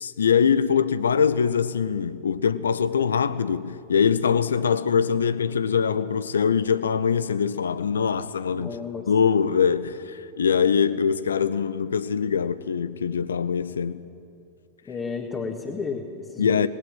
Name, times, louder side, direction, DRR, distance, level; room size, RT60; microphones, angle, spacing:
voice 1, 0.0-8.7 9.1-14.0 16.4-16.7, left 7 dB, 70° left, 0.8 m, -23 dB
voice 2, 8.5-9.1 14.9-16.7, left 5 dB, 20° left, 1.9 m, -32 dB
19.5 x 18.0 x 9.8 m
figure-of-eight pair, 90°, 0 cm